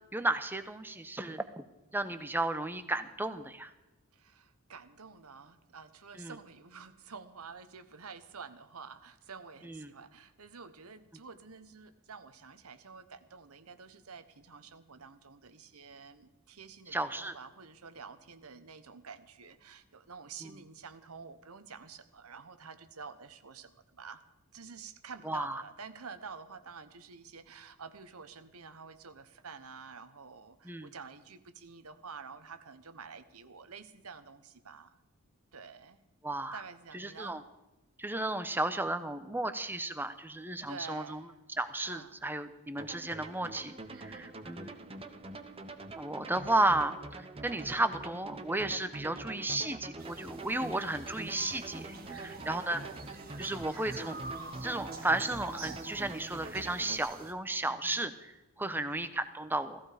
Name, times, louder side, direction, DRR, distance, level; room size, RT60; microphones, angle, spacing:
voice 1, 0.1-1.6 1.9-3.7 6.2-6.3 9.6-9.9 16.9-17.4 20.4-20.5 25.2-25.6 30.6-30.9 36.2-36.6 36.9-37.4 38.0-41.2 41.6-44.7 46.0-52.8 53.4-54.2 54.6-59.8, right 2 dB, 10° right, 10 dB, 0.9 m, -34 dB
voice 2, 4.1-24.2 24.5-35.0 35.5-36.0 36.5-37.4 40.7-41.4 41.8-42.2 43.9-44.4 52.0-52.4 52.8-53.0 57.7-58.0 58.6-58.9, right 5 dB, 80° right, 11 dB, 1.2 m, -49 dB
sound 1, 42.8-57.0, right 2 dB, 25° right, 1.1 m, -45 dB
sound 2, 50.0-57.3, right 3 dB, 45° right, 1.9 m, -47 dB
17.0 x 15.0 x 5.1 m, 1.0 s
head